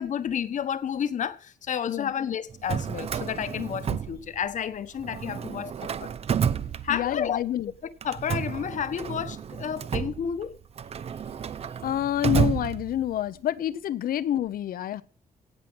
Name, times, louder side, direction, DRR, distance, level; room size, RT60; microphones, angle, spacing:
voice 1, 0.0-5.7 6.0-6.1 6.8-7.4 8.0-10.6, left 8 dB, 55° left, 1.2 m, -31 dB
Drawer open or close, 2.5-4.7 5.0-7.4 8.0-13.3, right 7 dB, 45° right, 0.6 m, -31 dB
voice 2, 6.9-7.7 11.8-15.0, left 11 dB, 75° left, 0.9 m, -27 dB
17.0 x 7.5 x 6.2 m
cardioid pair, 135°, 15 cm